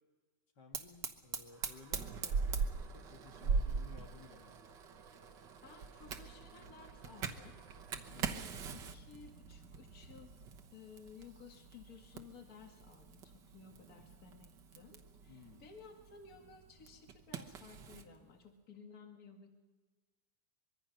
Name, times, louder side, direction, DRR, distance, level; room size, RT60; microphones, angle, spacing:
voice 1, 0.6-4.6 7.9-8.3 15.3-15.6, left 4 dB, 75° left, 3 dB, 2.5 m, -57 dB
Fire, 0.7-18.1, right 5 dB, 85° right, 1.8 m, -42 dB
voice 2, 5.6-7.6 8.1-10.4 10.7-19.5, left 5 dB, 55° left, 3 dB, 2.2 m, -56 dB
24.0 x 22.5 x 5.8 m, 1.3 s
omnidirectional pair, 1.8 m